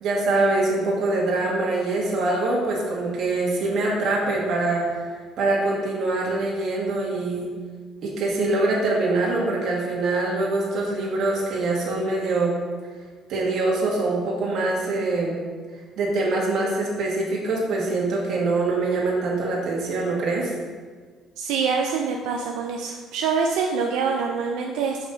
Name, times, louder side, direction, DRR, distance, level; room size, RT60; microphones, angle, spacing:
voice 1, 0.0-5.0 5.4-7.5 8.0-12.6 13.3-15.4 16.0-20.5, right 2 dB, 55° right, -3 dB, 1.6 m, -24 dB
voice 2, 21.4-25.0, right 5 dB, 90° right, 1 dB, 0.5 m, -25 dB
5.3 x 3.8 x 5.4 m, 1.5 s
cardioid pair, 150°, 0 cm